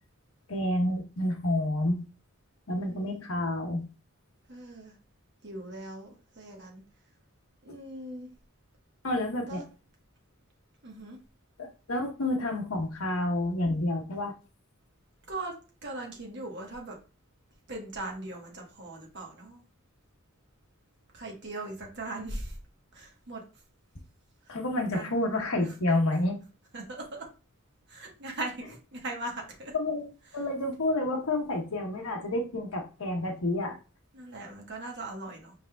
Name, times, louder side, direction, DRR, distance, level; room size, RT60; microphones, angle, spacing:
voice 1, 0.5-2.0 2.7-3.9 9.0-9.6 11.6-14.3 24.5-26.4 29.7-30.1 30.3-33.8, left 1 dB, 80° left, 2 dB, 1.0 m, -29 dB
voice 2, 2.7-3.3 4.5-5.0 5.4-6.8 7.6-8.3 9.5-9.7 10.8-11.2 15.3-15.5 15.8-17.0 17.7-19.6 21.1-22.6 22.9-23.4 24.4-25.1 25.6-25.8 26.7-27.3 27.9-29.7 34.1-35.5, right 2 dB, 55° right, 1 dB, 1.2 m, -40 dB
5.1 x 3.5 x 2.3 m, 0.34 s
head